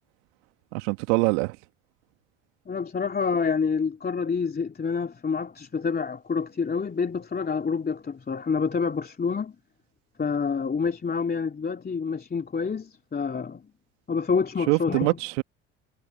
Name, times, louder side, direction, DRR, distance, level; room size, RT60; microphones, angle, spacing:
voice 1, 0.7-1.6 14.7-15.4, right 30 dB, 65° right, 2.0 m, -24 dB
voice 2, 2.7-9.5 10.2-13.7 14.1-15.2, left 5 dB, 25° left, 3.0 m, -27 dB
hypercardioid pair, 65°, 38 cm